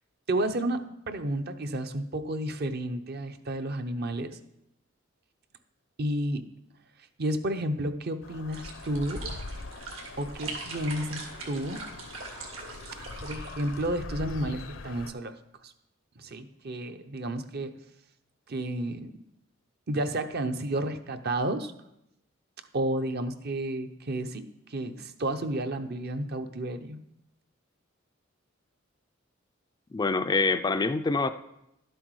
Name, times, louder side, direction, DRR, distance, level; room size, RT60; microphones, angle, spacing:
voice 1, 0.3-4.4 6.0-6.4 7.2-9.3 10.2-11.8 12.9-15.3 15.6-15.7 16.2-17.7 18.5-19.1 19.9-21.7 22.7-27.0, right 1 dB, 50° right, 8 dB, 0.7 m, -31 dB
sound 1, 8.2-15.1, left 3 dB, 70° left, 0.7 m, -42 dB
sound 2, 8.5-13.9, right 3 dB, 80° right, 2.3 m, -42 dB
voice 2, 29.9-31.3, left 3 dB, 20° left, 9 dB, 0.3 m, -25 dB
11.5 x 7.9 x 4.8 m, 0.83 s
head